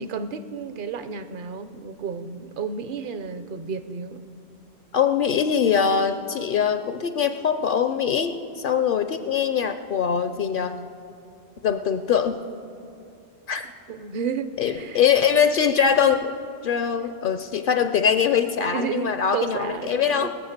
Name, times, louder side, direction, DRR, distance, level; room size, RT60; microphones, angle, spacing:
voice 1, 0.0-4.3 13.9-15.0 18.7-20.3, right 6 dB, 55° right, 11 dB, 0.8 m, -32 dB
voice 2, 4.9-10.8 11.6-12.4 13.5-13.7 14.6-16.3 16.6-20.3, left 7 dB, 60° left, 10 dB, 0.7 m, -22 dB
21.5 x 7.4 x 6.5 m, 2.5 s
omnidirectional pair, 1.1 m